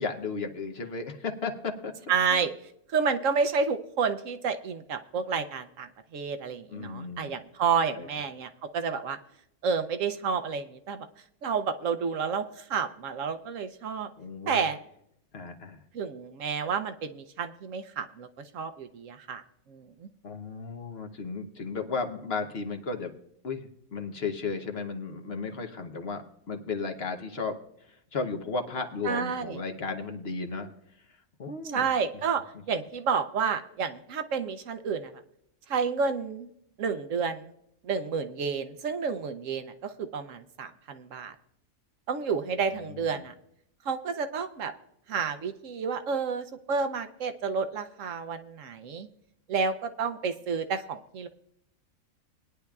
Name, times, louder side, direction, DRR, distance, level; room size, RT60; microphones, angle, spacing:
voice 1, 0.0-1.9 6.7-7.4 8.0-8.1 14.2-14.6 15.3-15.8 20.2-23.1 23.4-30.7 31.4-31.9 42.9-43.2, left 4 dB, 50° left, 4 dB, 1.0 m, -34 dB
voice 2, 2.1-2.5 2.9-9.2 9.6-11.1 11.4-14.1 14.5-14.8 15.9-18.3 18.5-19.4 19.7-20.1 29.0-29.6 31.6-35.1 35.7-36.5 36.8-37.5 37.8-41.3 42.1-43.3 43.8-44.7 45.1-49.1 49.5-51.3, right 5 dB, 65° right, 9 dB, 1.0 m, -30 dB
20.0 x 10.0 x 2.3 m, 0.74 s
omnidirectional pair, 1.5 m